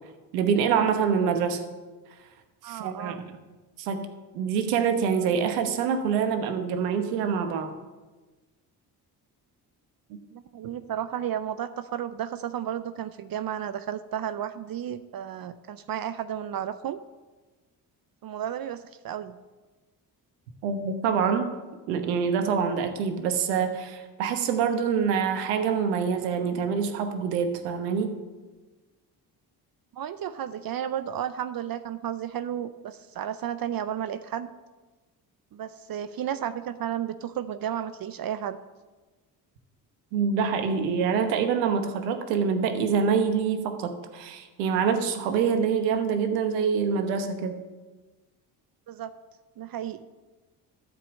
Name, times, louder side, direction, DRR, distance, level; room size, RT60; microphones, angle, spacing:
voice 1, 0.3-1.6 2.6-3.4 3.8-7.7 20.6-21.5 21.9-28.1 40.1-47.7, right 6 dB, 85° right, 7 dB, 1.1 m, -26 dB
voice 2, 2.6-3.2 10.3-17.0 18.2-19.4 29.9-34.5 35.5-38.6 48.9-49.1 49.6-50.1, right 10 dB, 50° right, 12 dB, 0.6 m, -33 dB
12.5 x 5.3 x 7.2 m, 1.2 s
hypercardioid pair, 50°, 48 cm